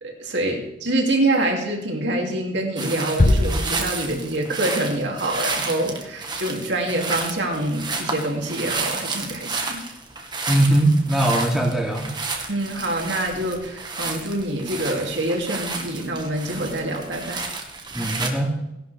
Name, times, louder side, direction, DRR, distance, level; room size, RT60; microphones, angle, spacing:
voice 1, 0.0-9.8 12.5-17.5, right 1 dB, 65° right, 1 dB, 2.8 m, -26 dB
sound 1, 2.8-18.3, right 3 dB, 25° right, 1.6 m, -31 dB
sound 2, 3.2-4.6, left 1 dB, 40° left, 0.8 m, -21 dB
voice 2, 10.5-12.0 17.9-18.6, right 1 dB, ahead, -2 dB, 2.7 m, -20 dB
17.5 x 11.5 x 3.5 m, 0.88 s
head